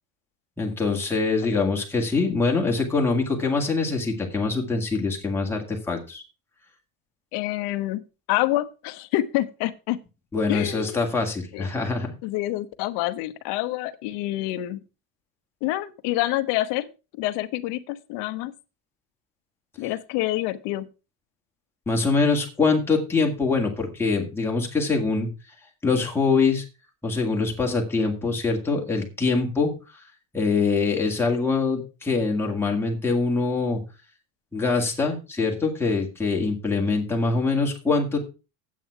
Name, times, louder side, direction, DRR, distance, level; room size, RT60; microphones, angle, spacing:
voice 1, 0.6-6.2 10.3-12.1 21.9-25.3 25.8-26.6 27.0-30.0 30.3-33.8 34.5-38.2, left 4 dB, 5° left, -1 dB, 2.0 m, -24 dB
voice 2, 7.3-8.0 8.3-10.0 10.5-11.0 11.5-11.7 12.2-14.8 15.6-18.5 19.8-20.9, left 16 dB, 60° left, 12 dB, 1.0 m, -27 dB
9.1 x 8.5 x 4.6 m, 0.30 s
cardioid pair, 175°, 46 cm